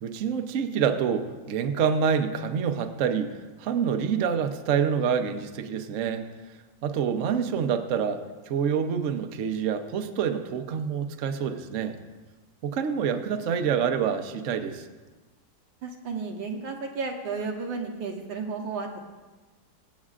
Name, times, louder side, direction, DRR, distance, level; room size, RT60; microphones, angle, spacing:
voice 1, 0.0-6.2 6.8-12.0 12.6-14.9, right 7 dB, 60° right, 6 dB, 0.8 m, -27 dB
voice 2, 15.8-19.0, right 4 dB, 85° right, 2 dB, 1.9 m, -33 dB
22.5 x 8.4 x 2.5 m, 1.3 s
omnidirectional pair, 2.0 m